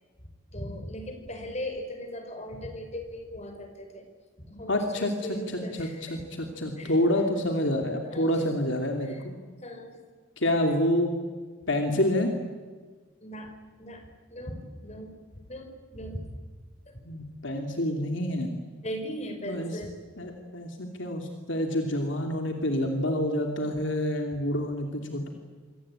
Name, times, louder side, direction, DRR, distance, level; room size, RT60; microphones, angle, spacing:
voice 1, 0.5-4.1 4.4-6.2 6.8-7.0 8.1-8.5 9.0-9.2 9.6-10.0 13.2-15.1 15.5-16.3 16.9-17.0 18.8-20.0, equal, 30° left, 6 dB, 5.2 m, -39 dB
voice 2, 4.7-5.1 5.8-9.1 10.4-11.1 11.7-12.3 17.1-18.5 19.5-19.7 20.2-25.3, left 1 dB, 60° left, 3 dB, 2.9 m, -27 dB
27.0 x 23.5 x 9.0 m, 1.5 s
head